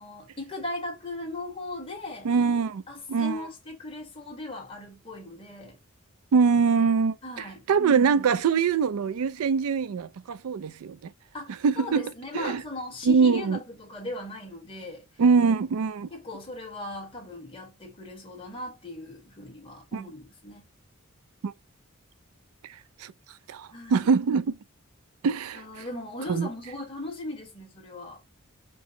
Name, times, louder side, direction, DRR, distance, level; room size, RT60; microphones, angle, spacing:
voice 1, 0.0-2.3 2.9-5.8 7.2-7.7 11.3-15.1 16.1-20.6 23.7-24.1 25.5-28.2, left 2 dB, 25° left, 1.3 m, -38 dB
voice 2, 2.2-2.8 3.1-3.5 6.3-7.2 7.7-11.1 11.6-12.6 13.0-13.6 15.2-16.1 19.9-20.0 21.4-21.5 23.0-23.1 23.5-24.5 25.2-25.6 26.3-26.5, right 5 dB, 80° right, 0.4 m, -23 dB
4.5 x 2.0 x 3.7 m
head